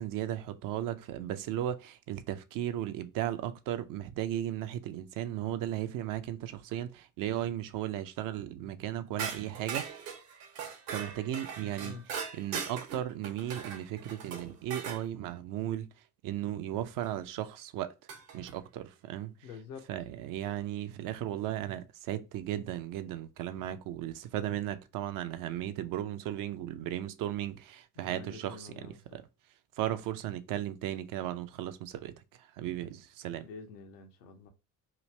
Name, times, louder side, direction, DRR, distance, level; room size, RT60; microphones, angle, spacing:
voice 1, 0.0-10.1 10.9-12.0 12.4-15.9 16.2-17.9 18.3-19.5 19.9-29.2 29.8-33.5, right 12 dB, 45° right, 0.4 m, -36 dB
sound 1, 9.2-15.0 17.0-17.1 18.1-18.5, right 6 dB, 65° right, 1.0 m, -40 dB
voice 2, 19.4-19.8 28.0-29.0 33.4-34.5, left 5 dB, 75° left, 0.7 m, -47 dB
3.0 x 2.5 x 3.1 m
figure-of-eight pair, 55°, 46 cm